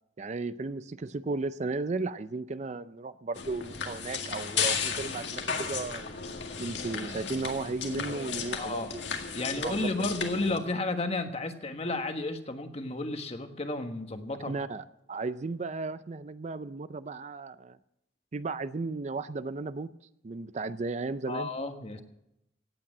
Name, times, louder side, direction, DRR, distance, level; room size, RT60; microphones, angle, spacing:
voice 1, 0.2-6.0 6.6-9.1 9.5-9.9 14.5-17.8 18.3-19.9 20.2-21.5, right 3 dB, 40° right, 14 dB, 0.4 m, -35 dB
sound 1, 3.4-10.6, left 6 dB, 75° left, 2.0 m, -34 dB
voice 2, 8.6-8.9 9.3-14.5 21.3-22.0, left 2 dB, 35° left, 7 dB, 1.4 m, -32 dB
17.0 x 8.8 x 7.5 m, 0.84 s
head